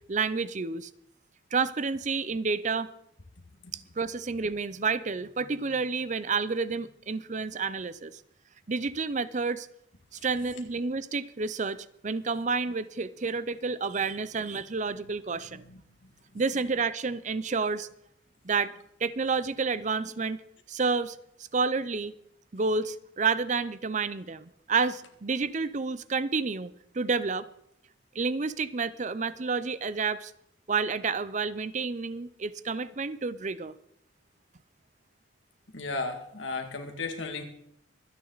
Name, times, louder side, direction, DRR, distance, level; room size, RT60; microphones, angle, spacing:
voice 1, 0.1-0.9 1.5-2.9 3.7-8.2 8.7-9.7 10.2-15.6 16.3-17.9 18.4-18.7 19.0-20.4 20.7-21.2 21.5-22.1 22.5-27.5 28.1-30.3 30.7-33.7, right 4 dB, 40° right, 0.6 m, -30 dB
voice 2, 15.5-16.1 35.7-37.4, left 3 dB, 80° left, 2.2 m, -35 dB
24.5 x 9.8 x 4.0 m
head